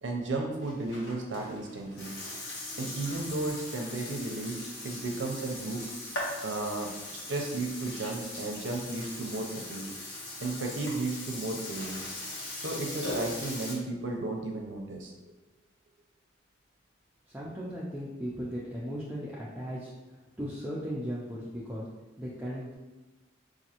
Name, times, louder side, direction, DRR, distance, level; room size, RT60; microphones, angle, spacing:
voice 1, 0.0-2.1 2.8-5.8 6.4-9.9 10.4-12.0 12.6-15.1, right 2 dB, 70° right, 1 dB, 0.5 m, -34 dB
Burping eructation, 0.6-13.7, left 1 dB, 55° left, 1.0 m, -40 dB
voice 2, 17.3-21.9 22.2-22.7, equal, 5° right, -7 dB, 0.4 m, -37 dB
5.0 x 2.6 x 2.8 m, 1.1 s
head